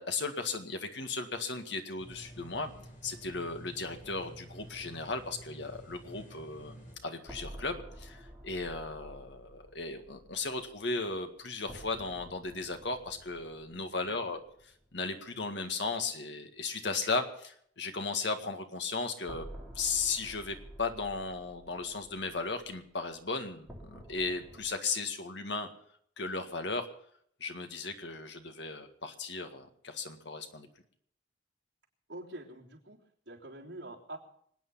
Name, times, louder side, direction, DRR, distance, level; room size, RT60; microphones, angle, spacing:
voice 1, 0.0-2.7 3.0-14.4 14.9-19.5 19.8-25.7 26.2-26.9 27.4-30.7, left 3 dB, 70° left, 7 dB, 1.9 m, -36 dB
sound 1, 2.0-7.0, right 1 dB, 50° left, 7.4 m, -50 dB
sound 2, 7.2-15.0 15.3-15.4 19.2-24.6, equal, ahead, 4.0 m, -51 dB
voice 2, 13.9-14.4 32.1-34.2, right 1 dB, 70° right, -3 dB, 3.6 m, -46 dB
25.5 x 9.4 x 5.7 m, 0.64 s
head